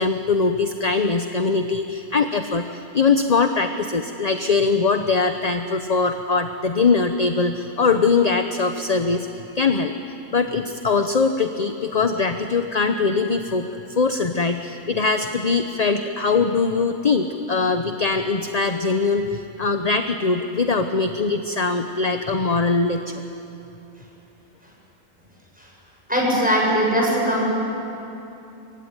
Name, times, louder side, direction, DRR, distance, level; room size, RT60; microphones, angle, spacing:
voice 1, 0.0-9.3 9.5-9.9 10.3-23.3, left 4 dB, 35° left, 7 dB, 0.9 m, -22 dB
voice 2, 26.1-27.4, equal, 5° right, -3 dB, 7.5 m, -20 dB
25.0 x 24.5 x 9.8 m, 2.9 s
omnidirectional pair, 1.4 m